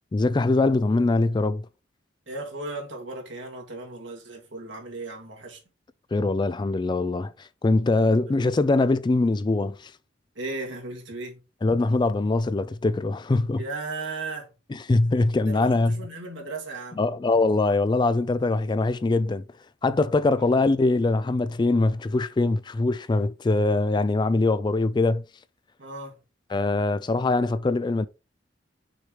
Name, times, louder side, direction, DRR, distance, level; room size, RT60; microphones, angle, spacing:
voice 1, 0.1-1.7 6.1-9.9 11.6-13.6 14.7-16.0 17.0-19.4 19.8-25.2 26.5-28.1, left 2 dB, 25° left, 0.3 m, -23 dB
voice 2, 2.3-5.6 7.9-8.4 10.4-11.4 13.6-14.5 15.4-17.1 25.8-26.2, right 3 dB, 85° right, 2.1 m, -36 dB
6.5 x 3.1 x 4.9 m
head